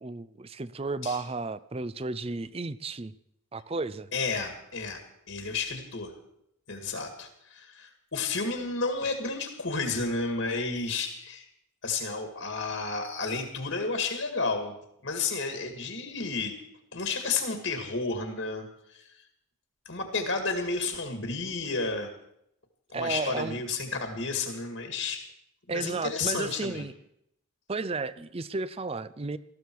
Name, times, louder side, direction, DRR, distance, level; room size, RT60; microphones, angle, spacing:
voice 1, 0.0-3.1 3.5-4.1 22.9-23.6 25.7-26.9 27.7-29.4, right 3 dB, 25° right, 16 dB, 0.5 m, -33 dB
voice 2, 4.1-5.0 5.3-6.2 6.7-11.5 11.8-14.7 15.0-16.6 16.9-18.7 18.9-19.1 19.9-22.1 22.9-25.3 25.7-26.9, left 4 dB, 65° left, 5 dB, 2.0 m, -31 dB
19.0 x 14.5 x 4.7 m, 0.76 s
head